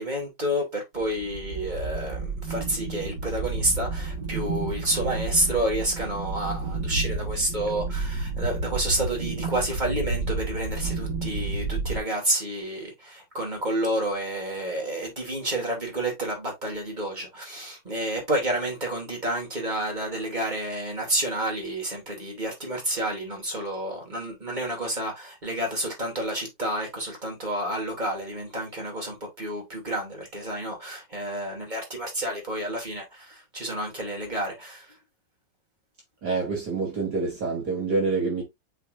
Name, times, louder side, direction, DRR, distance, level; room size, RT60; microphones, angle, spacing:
voice 1, 0.0-34.9, right 1 dB, 20° right, 3.0 m, -30 dB
sound 1, 1.0-12.0, right 3 dB, 75° right, 3.1 m, -31 dB
voice 2, 36.2-38.4, right 4 dB, 55° right, 2.9 m, -27 dB
8.0 x 4.6 x 2.6 m
omnidirectional pair, 2.1 m